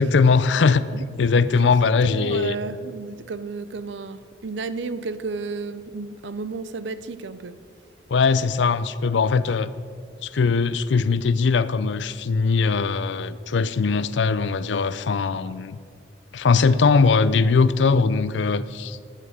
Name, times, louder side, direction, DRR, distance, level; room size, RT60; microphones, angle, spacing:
voice 1, 0.0-0.8 1.2-2.5 8.1-9.7 10.2-15.8 16.3-19.0, left 4 dB, 75° left, 0.5 m, -20 dB
voice 2, 0.6-1.0 1.5-7.6, right 4 dB, 75° right, 0.6 m, -33 dB
12.5 x 9.3 x 5.0 m
head